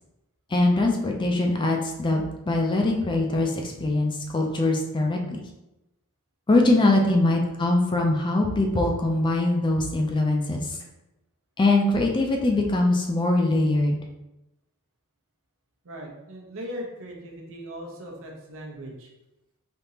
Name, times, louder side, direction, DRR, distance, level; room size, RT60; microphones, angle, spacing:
voice 1, 0.5-5.4 6.5-10.8 11.6-14.0, left 2 dB, 20° left, 1 dB, 0.4 m, -22 dB
voice 2, 15.8-19.1, equal, 60° right, -1 dB, 0.8 m, -39 dB
3.5 x 2.9 x 2.7 m, 0.94 s
head